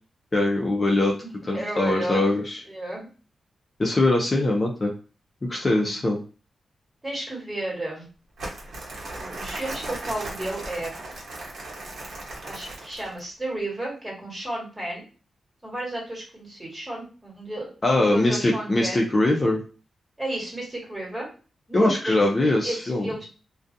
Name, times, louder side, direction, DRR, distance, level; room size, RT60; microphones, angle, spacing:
voice 1, 0.3-1.2 1.5-2.6 3.8-4.9 5.5-6.2 17.8-19.6 21.7-23.1, left 2 dB, 30° left, -1 dB, 0.6 m, -22 dB
voice 2, 1.2-2.2 2.7-3.1 5.8-6.0 7.0-8.1 9.1-11.0 12.4-15.1 15.6-17.7 18.0-19.0 20.2-21.3 21.7-23.3, right 1 dB, 15° right, -3 dB, 1.4 m, -33 dB
Crumpling crinkling, 8.4-13.2, right 2 dB, 80° right, 0.9 m, -37 dB
2.3 x 2.3 x 2.6 m, 0.35 s
cardioid pair, 85°, 0 cm